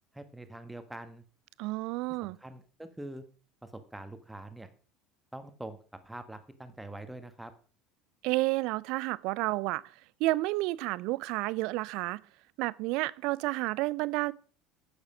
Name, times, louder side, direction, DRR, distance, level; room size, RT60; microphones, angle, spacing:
voice 1, 0.1-1.2 2.2-3.2 3.6-4.7 5.3-5.8 6.0-7.5, right 1 dB, 5° right, 1.4 m, -44 dB
voice 2, 1.6-2.4 8.2-9.8 10.2-12.2 12.6-14.3, right 20 dB, 55° right, 0.5 m, -30 dB
10.5 x 8.7 x 5.0 m
figure-of-eight pair, 65°, 0 cm